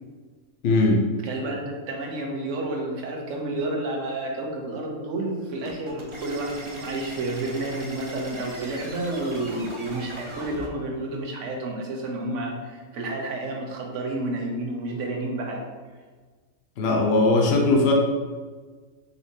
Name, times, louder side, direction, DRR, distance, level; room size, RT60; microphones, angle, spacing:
voice 1, 0.6-1.0 16.8-17.9, left 2 dB, 60° left, 1 dB, 0.8 m, -19 dB
voice 2, 1.2-15.7, right 2 dB, 70° right, 0 dB, 1.1 m, -30 dB
Gabe Leadon, 5.7-10.7, right 1 dB, 40° right, 0.4 m, -40 dB
4.7 x 4.1 x 2.7 m, 1.4 s
omnidirectional pair, 1.4 m